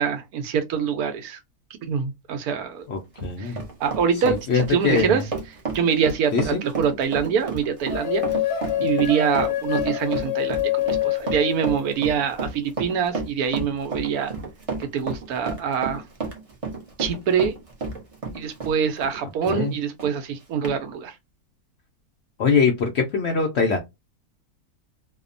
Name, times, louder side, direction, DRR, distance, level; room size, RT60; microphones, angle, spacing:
voice 1, 0.0-1.4 1.8-2.8 3.4-3.5 3.8-5.2 5.7-8.2 8.8-14.3 14.9-16.0 17.0-17.6 18.3-21.1, right 7 dB, 80° right, 1.1 m, -24 dB
voice 2, 2.9-3.6 4.2-5.2 6.3-6.6 19.5-19.7 22.4-23.8, left 5 dB, 65° left, 0.6 m, -22 dB
Run, 3.0-19.7 20.0-20.1 20.6-20.8, right 4 dB, 35° right, 0.6 m, -32 dB
sound 1, 7.9-12.4, left 13 dB, 85° left, 1.1 m, -26 dB
2.8 x 2.1 x 2.4 m
omnidirectional pair, 1.6 m